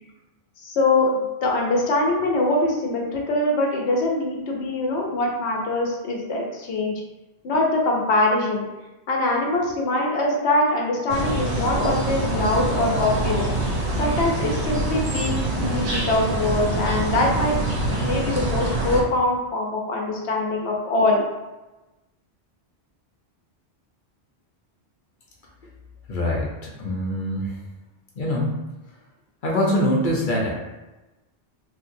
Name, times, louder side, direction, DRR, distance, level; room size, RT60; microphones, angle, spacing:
voice 1, 0.6-6.9 7.4-8.7 9.1-13.5 14.0-17.6 18.0-21.2, left 2 dB, 80° left, -1 dB, 1.0 m, -23 dB
sound 1, 11.1-19.0, right 2 dB, 45° right, 0.5 m, -25 dB
voice 2, 26.1-27.5 28.2-28.5 29.4-30.5, left 1 dB, 55° left, -2 dB, 0.7 m, -23 dB
3.2 x 2.8 x 2.6 m, 1.1 s
omnidirectional pair, 1.1 m